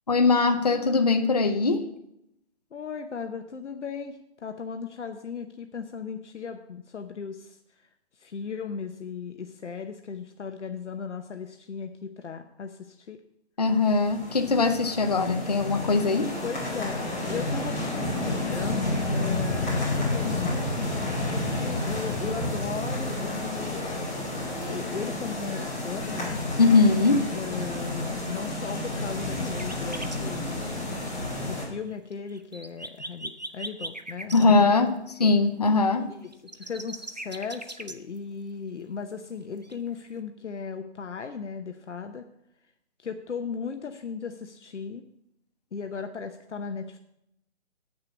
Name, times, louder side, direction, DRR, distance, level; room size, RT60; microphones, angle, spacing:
voice 1, 0.1-1.9 13.6-16.3 26.6-27.3 34.3-36.1, left 3 dB, 35° left, 5 dB, 0.7 m, -21 dB
voice 2, 2.7-7.6 8.2-13.2 16.4-17.0 17.3-20.9 21.3-23.9 24.7-26.4 27.3-30.9 31.5-34.7 36.1-42.3 43.0-45.0 45.7-47.0, left 6 dB, 75° left, 6 dB, 0.9 m, -37 dB
sound 1, 13.7-31.6, left 2 dB, 10° left, 2.9 m, -30 dB
sound 2, 29.4-30.2 31.7-31.8 31.9-34.5 36.2-38.2 39.6-39.7 40.2-40.3, right 1 dB, 40° right, 0.4 m, -39 dB
8.3 x 6.6 x 7.2 m, 0.81 s
hypercardioid pair, 180°, 36 cm